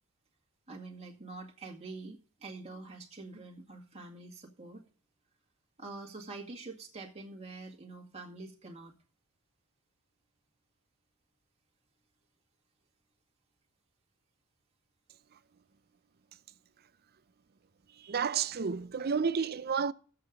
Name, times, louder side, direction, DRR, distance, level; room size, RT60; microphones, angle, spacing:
voice 1, 0.7-4.8 5.8-8.9, right 3 dB, 30° right, 2.2 m, -46 dB
voice 2, 18.0-19.9, right 6 dB, 45° right, 0.6 m, -31 dB
13.5 x 7.6 x 5.2 m
head